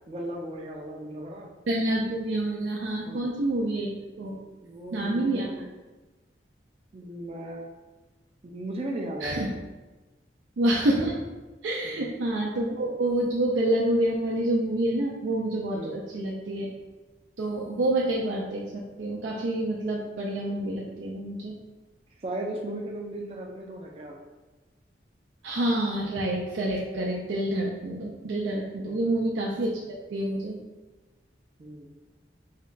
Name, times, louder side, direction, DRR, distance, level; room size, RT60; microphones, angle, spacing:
voice 1, 0.1-1.5 3.1-3.3 4.6-5.7 6.9-7.7 8.4-9.5 11.8-12.1 15.7-16.0 22.2-24.2 28.9-29.0 31.6-31.9, right 1 dB, 30° right, 0 dB, 0.3 m, -36 dB
voice 2, 1.7-4.4 4.9-5.5 9.2-9.5 10.6-11.2 11.6-16.7 17.4-18.7 19.0-21.5 25.4-30.6, right 1 dB, 90° right, -3 dB, 0.5 m, -27 dB
3.5 x 2.2 x 3.8 m, 1.2 s
head